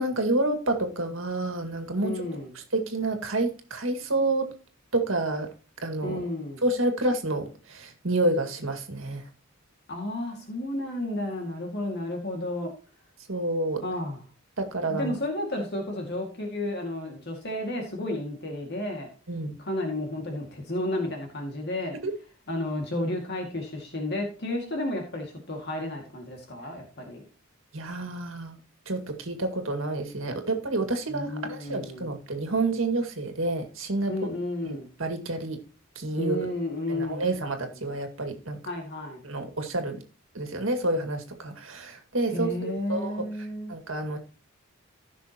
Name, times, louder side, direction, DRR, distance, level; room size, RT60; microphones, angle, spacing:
voice 1, 0.0-2.2 2.7-4.5 4.9-5.5 5.8-6.2 6.6-9.2 13.3-13.8 14.6-15.1 19.3-19.5 22.0-22.1 27.7-28.6 28.9-34.1 34.6-35.6 36.0-36.5 36.9-38.6 39.2-40.0 40.3-44.2, right 2 dB, 70° right, 5 dB, 2.0 m, -29 dB
voice 2, 2.0-2.5 6.0-6.6 9.9-12.7 13.8-14.2 14.9-19.1 19.6-22.0 22.5-27.2 31.1-32.1 34.1-34.9 36.2-37.2 38.7-39.2 42.3-43.7, left 1 dB, 55° left, 1 dB, 2.1 m, -32 dB
15.0 x 6.2 x 2.9 m, 0.36 s
head